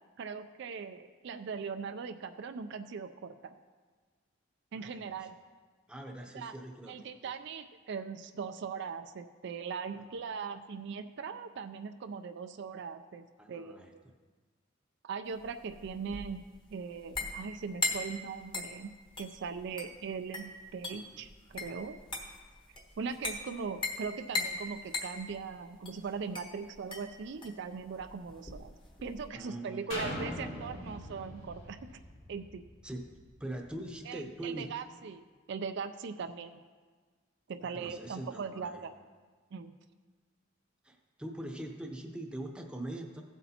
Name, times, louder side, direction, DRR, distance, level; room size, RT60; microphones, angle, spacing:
voice 1, 0.2-3.6 4.7-5.4 6.3-6.5 6.9-14.0 15.0-16.4 16.7-22.0 23.0-28.7 29.0-31.9 32.3-32.6 34.1-36.6 37.5-38.9 39.5-39.7, right 5 dB, 60° right, 9 dB, 0.4 m, -40 dB
voice 2, 4.7-5.3 5.9-7.3 9.9-10.0 13.4-13.9 20.9-21.2 29.3-30.1 32.8-33.1 33.4-34.7 37.6-38.8 40.8-43.2, right 1 dB, 5° right, 2 dB, 0.8 m, -43 dB
sound 1, 15.3-29.3, left 3 dB, 25° left, 1.1 m, -40 dB
sound 2, 29.9-33.7 34.2-34.3, left 1 dB, 70° left, 2.7 m, -41 dB
15.5 x 8.1 x 2.9 m, 1.5 s
head